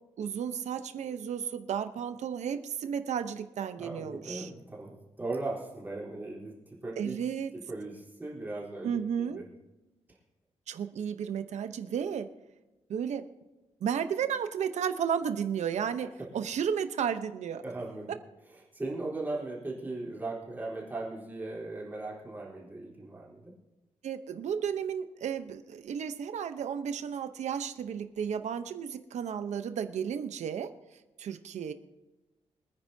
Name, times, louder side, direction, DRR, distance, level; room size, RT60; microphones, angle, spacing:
voice 1, 0.2-4.5 7.0-7.5 8.8-9.4 10.7-12.3 12.9-13.3 13.8-17.6 24.0-30.7 31.2-31.7, right 8 dB, 85° right, 10 dB, 0.9 m, -33 dB
voice 2, 3.8-7.2 7.5-9.4 17.6-18.2 18.5-23.5, right 2 dB, 15° right, -6 dB, 3.8 m, -38 dB
25.0 x 9.8 x 2.8 m, 1.1 s
wide cardioid pair, 175°, 12 cm